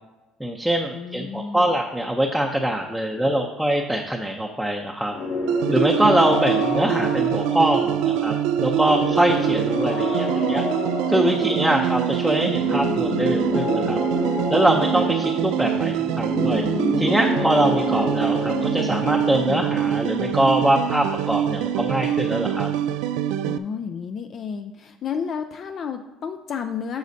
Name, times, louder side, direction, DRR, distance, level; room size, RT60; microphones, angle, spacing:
voice 1, 0.4-5.1 5.7-10.6 11.1-14.0 14.5-16.6 17.0-22.7, right 1 dB, 5° right, 1 dB, 0.6 m, -23 dB
voice 2, 0.9-1.7 11.3-11.8 23.4-27.0, left 6 dB, 45° left, 7 dB, 0.4 m, -32 dB
sound 1, 5.1-22.7, left 3 dB, 70° left, 1.1 m, -29 dB
sound 2, 5.5-23.6, right 10 dB, 85° right, 0.3 m, -24 dB
9.3 x 6.2 x 2.7 m, 1.1 s
cardioid pair, 115°, 0 cm